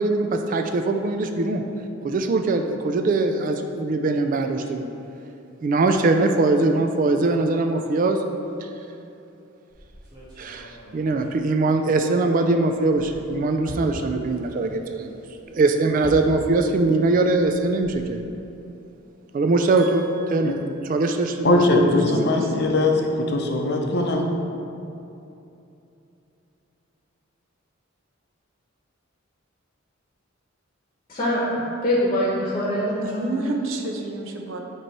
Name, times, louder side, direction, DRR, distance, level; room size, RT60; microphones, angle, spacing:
voice 1, 0.0-1.6 2.0-4.9 5.6-8.2 8.6-8.7 10.4-15.2 15.5-18.2 19.3-20.1 20.3-20.6 20.8-22.3, right 3 dB, 40° right, 5 dB, 0.3 m, -22 dB
sound 1, 9.7-12.4 12.7-16.8 17.1-18.4, equal, 20° right, 1.3 m, -42 dB
voice 2, 19.8-20.6 21.8-22.5 33.0-34.6, right 2 dB, 70° right, 3 dB, 0.7 m, -31 dB
voice 3, 21.4-24.2, left 2 dB, 50° left, 1 dB, 0.6 m, -20 dB
voice 4, 31.1-33.3, equal, 30° left, -5 dB, 1.0 m, -24 dB
8.8 x 3.0 x 4.6 m, 2.8 s
head